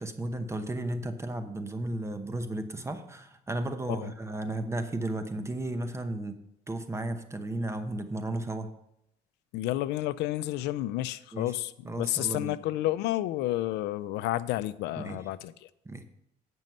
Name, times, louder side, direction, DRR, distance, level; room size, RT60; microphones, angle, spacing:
voice 1, 0.0-6.4 6.7-8.7 11.3-11.5 11.8-12.6 15.0-15.2 15.8-16.0, right 1 dB, 15° right, 8 dB, 0.8 m, -34 dB
voice 2, 9.5-15.7, left 15 dB, 85° left, 16 dB, 0.5 m, -31 dB
9.0 x 6.2 x 5.4 m, 0.80 s
cardioid pair, 110°, 17 cm